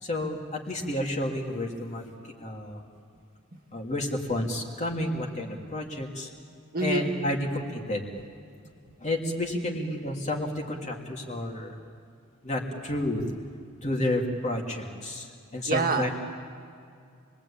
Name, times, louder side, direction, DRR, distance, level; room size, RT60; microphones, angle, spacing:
voice 1, 0.0-2.1 2.4-2.8 3.7-6.3 6.8-8.1 9.0-11.8 12.4-13.2 13.8-16.1, left 1 dB, 35° left, 1 dB, 3.0 m, -30 dB
voice 2, 6.7-7.1 15.7-16.1, right 3 dB, 40° right, 2 dB, 2.0 m, -26 dB
29.0 x 21.0 x 8.8 m, 2.4 s
head